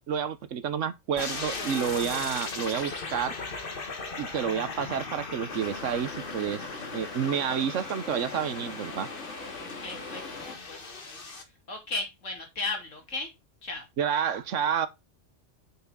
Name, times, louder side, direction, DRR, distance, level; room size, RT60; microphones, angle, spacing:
voice 1, 0.1-3.3 4.2-6.6 6.9-9.1 14.0-14.9, right 8 dB, 80° right, 1.2 m, -29 dB
sound 1, 1.2-11.4, left 3 dB, 45° left, 1.6 m, -38 dB
sound 2, 5.5-10.6, left 3 dB, 70° left, 2.2 m, -41 dB
voice 2, 9.6-10.9 11.4-13.3 13.6-13.9, left 3 dB, 85° left, 2.8 m, -36 dB
6.1 x 5.8 x 3.9 m
omnidirectional pair, 1.3 m